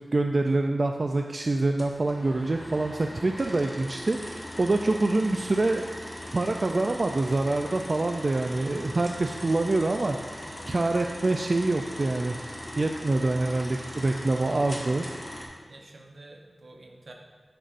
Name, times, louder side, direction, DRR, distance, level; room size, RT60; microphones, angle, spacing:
voice 1, 0.1-5.9 6.3-10.2 10.7-12.4 12.8-15.0, right 2 dB, 50° right, 4 dB, 0.3 m, -26 dB
sound 1, 1.8-15.5, equal, 25° left, 1.4 m, -40 dB
voice 2, 15.7-17.1, right 2 dB, 75° right, 1 dB, 0.9 m, -49 dB
10.0 x 5.1 x 2.5 m, 1.5 s
wide cardioid pair, 80°, 0 cm